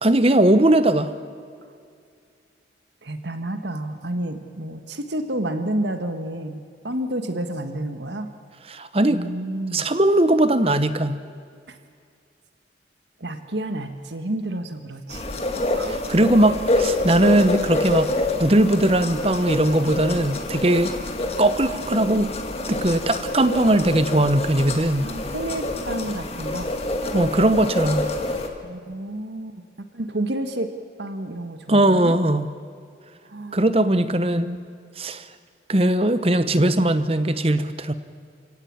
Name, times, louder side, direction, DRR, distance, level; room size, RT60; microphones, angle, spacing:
voice 1, 0.0-1.1 8.7-9.2 9.7-11.2 16.1-18.1 18.4-20.9 21.4-22.3 22.7-25.1 27.1-28.0 31.7-32.5 33.5-34.5 35.0-35.2 35.7-37.9, right 1 dB, 30° right, 12 dB, 1.0 m, -19 dB
voice 2, 3.0-8.3 9.1-9.9 11.7-11.8 13.2-15.3 15.7-16.1 25.0-26.7 28.6-30.7 31.0-32.1 33.2-33.6 34.0-34.6, right 1 dB, 70° right, 8 dB, 1.5 m, -30 dB
sound 1, 15.1-28.5, left 2 dB, 35° left, 2.0 m, -27 dB
29.0 x 17.0 x 8.8 m, 2.3 s
head